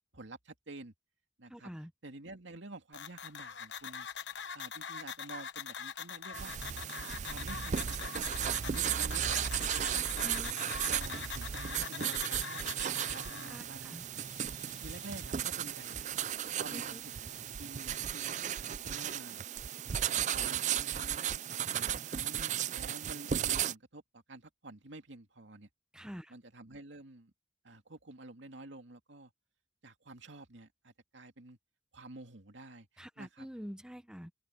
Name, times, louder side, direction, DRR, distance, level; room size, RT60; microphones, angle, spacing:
voice 1, 0.1-0.9 1.4-1.7 2.0-4.1 4.5-6.5 7.0-10.3 10.8-12.7 13.1-14.0 14.8-16.0 16.4-17.0 17.6-19.5 20.0-21.3 21.7-25.7 26.3-27.3 27.6-29.3 29.8-31.6 31.9-32.9 33.2-33.5, right 2 dB, 80° right, 2.5 m, -50 dB
voice 2, 1.5-1.9 10.2-10.6 13.4-14.0 16.7-17.0 25.9-26.3 33.0-34.3, equal, 5° right, 1.0 m, -46 dB
sound 1, 2.9-13.6, left 7 dB, 70° left, 1.2 m, -43 dB
sound 2, 6.3-23.7, right 9 dB, 40° right, 0.4 m, -35 dB
Bird, 12.7-19.2, left 6 dB, 90° left, 7.4 m, -61 dB
open air
head